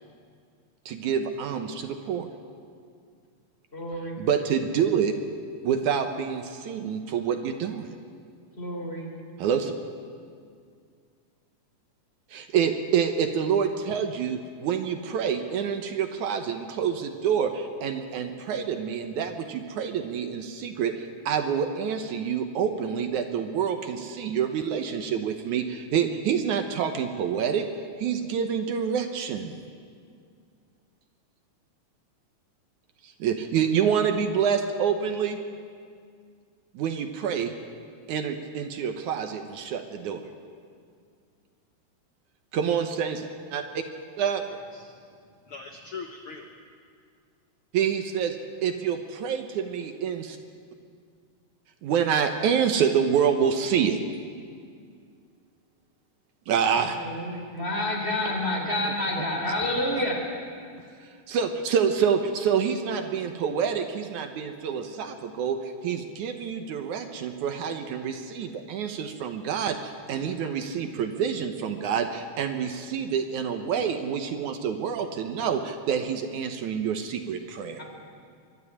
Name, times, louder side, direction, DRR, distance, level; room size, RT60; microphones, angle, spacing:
voice 1, 0.9-2.3 4.2-5.1 5.6-7.9 9.4-9.7 12.3-27.7 28.0-29.6 33.0-35.4 36.7-37.5 38.1-40.2 42.5-43.6 44.2-44.4 47.7-48.4 48.6-50.4 51.8-54.0 56.5-57.0 61.3-77.8, right 7 dB, 70° right, 7 dB, 2.3 m, -27 dB
voice 2, 3.7-4.1 8.6-9.1 56.8-60.2 77.8-77.9, left 1 dB, 20° left, 0 dB, 3.3 m, -29 dB
voice 3, 44.5-44.9 45.5-46.5, left 4 dB, 60° left, 4 dB, 1.5 m, -41 dB
24.5 x 12.5 x 10.0 m, 2.2 s
omnidirectional pair, 3.8 m